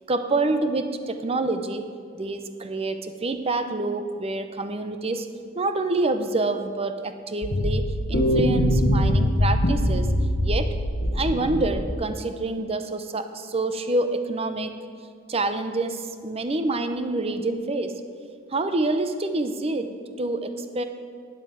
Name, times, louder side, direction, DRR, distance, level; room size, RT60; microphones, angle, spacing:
voice 1, 0.1-1.8 2.1-5.3 5.5-10.1 10.4-10.7 11.1-14.7 15.3-18.0 18.5-20.8, right 2 dB, 30° right, 9 dB, 0.6 m, -27 dB
sound 1, 7.4-12.1, equal, 50° left, 0.9 m, -23 dB
9.2 x 7.9 x 7.6 m, 2.1 s
head